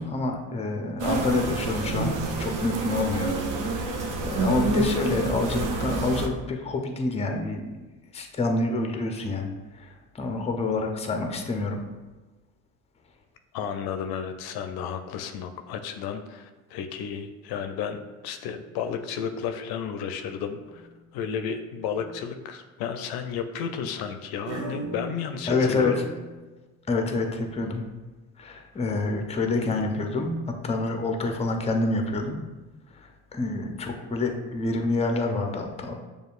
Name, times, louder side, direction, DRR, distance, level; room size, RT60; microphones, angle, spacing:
voice 1, 0.0-3.3 3.6-7.7 8.1-11.8 25.5-25.9 26.9-27.8 28.4-32.4 33.0-35.9, left 3 dB, 15° left, 3 dB, 0.5 m, -27 dB
sound 1, 1.0-6.3, right 3 dB, 50° right, 0.7 m, -28 dB
voice 2, 13.5-18.0 18.2-20.9 21.1-26.0, left 7 dB, 60° left, 7 dB, 0.5 m, -32 dB
sound 2, 20.6-21.0 21.7-22.2 24.5-26.4, right 2 dB, 75° right, 1.0 m, -38 dB
6.5 x 2.3 x 2.4 m, 1.2 s
hypercardioid pair, 65°, 42 cm